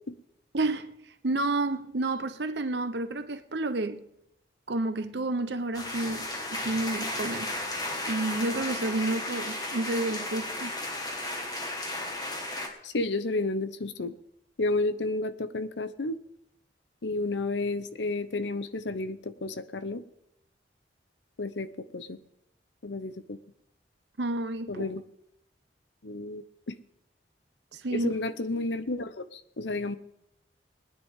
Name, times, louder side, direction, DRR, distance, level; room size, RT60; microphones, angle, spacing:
voice 1, 0.5-0.9 1.2-4.0 4.7-7.5 8.1-10.7 24.2-24.9 27.7-28.1, right 2 dB, 70° right, 1.0 m, -30 dB
sound 1, 5.7-12.7, left 1 dB, 20° left, 1.9 m, -34 dB
voice 2, 12.8-14.1 14.6-16.2 17.0-20.0 21.4-22.2 22.8-23.4 24.7-25.0 26.0-26.7 27.9-30.0, left 2 dB, 80° left, 0.8 m, -31 dB
20.0 x 10.0 x 3.7 m
head